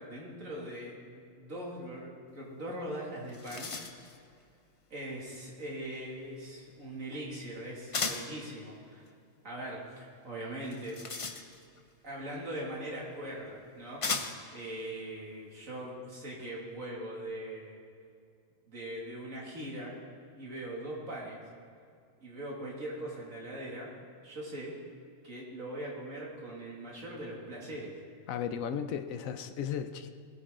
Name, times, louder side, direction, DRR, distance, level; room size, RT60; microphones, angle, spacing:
voice 1, 0.0-3.7 4.9-9.1 9.4-11.0 12.0-17.8 18.7-19.9 20.3-21.4 22.2-23.9 24.2-24.7 25.2-27.9, right 1 dB, 80° right, -3 dB, 2.7 m, -41 dB
sound 1, 2.8-2.9 3.2-4.2 7.9-8.4 10.6-11.8 12.9-13.0 14.0-14.6, left 4 dB, 35° left, 0.6 m, -36 dB
voice 2, 28.3-30.1, left 8 dB, 85° left, 10 dB, 1.1 m, -35 dB
19.5 x 8.6 x 3.8 m, 2.3 s
omnidirectional pair, 1.4 m